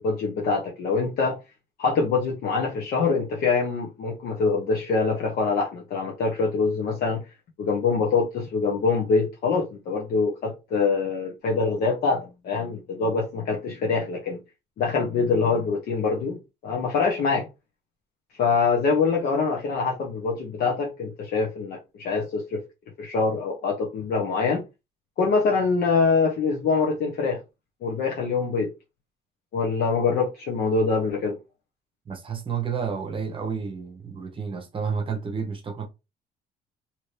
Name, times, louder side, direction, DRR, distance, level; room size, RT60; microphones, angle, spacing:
voice 1, 0.0-1.4 1.8-7.2 7.6-14.4 14.8-16.4 16.6-17.5 18.4-22.6 23.0-24.6 25.2-27.4 27.8-28.7 29.5-31.4, left 4 dB, 65° left, 0.9 m, -24 dB
voice 2, 32.1-35.9, right 6 dB, 30° right, 0.9 m, -30 dB
2.9 x 2.7 x 3.2 m
cardioid pair, 110°, 17 cm